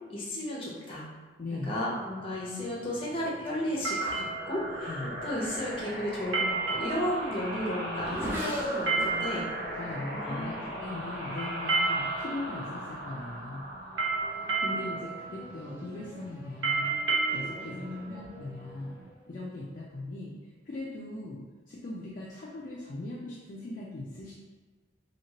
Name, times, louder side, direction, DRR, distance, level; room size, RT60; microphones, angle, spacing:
voice 1, 0.1-1.0 1.5-9.5 10.1-10.7 17.6-18.1, left 1 dB, 30° left, -5 dB, 0.7 m, -34 dB
voice 2, 1.4-1.8 4.9-5.2 9.6-13.7 14.6-16.9 17.3-19.0 19.3-20.3 20.7-24.3, left 2 dB, 45° left, -4 dB, 0.3 m, -39 dB
sound 1, 1.9-19.1, right 4 dB, 75° right, 0.6 m, -34 dB
sound 2, 4.2-15.6, equal, 55° right, 1.0 m, -39 dB
Race car auto racing / Accelerating revving vroom, 6.6-12.2 13.0-13.4 13.8-19.7, equal, 10° right, 0.5 m, -42 dB
2.9 x 2.7 x 2.8 m, 1.3 s
head